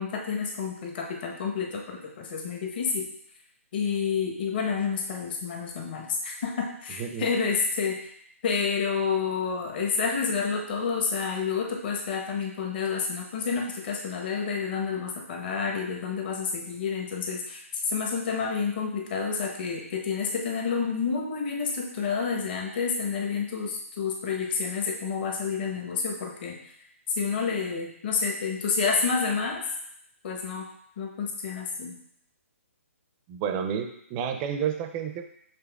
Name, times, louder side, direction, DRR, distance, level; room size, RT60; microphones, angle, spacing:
voice 1, 0.0-3.1 3.7-8.0 8.4-26.6 27.1-29.6 30.2-30.7 31.0-32.0, left 5 dB, 45° left, 1 dB, 0.9 m, -29 dB
voice 2, 7.0-7.3 33.3-35.2, right 8 dB, 25° right, 6 dB, 0.4 m, -30 dB
6.9 x 3.2 x 2.3 m, 0.72 s
figure-of-eight pair, 135°, 8 cm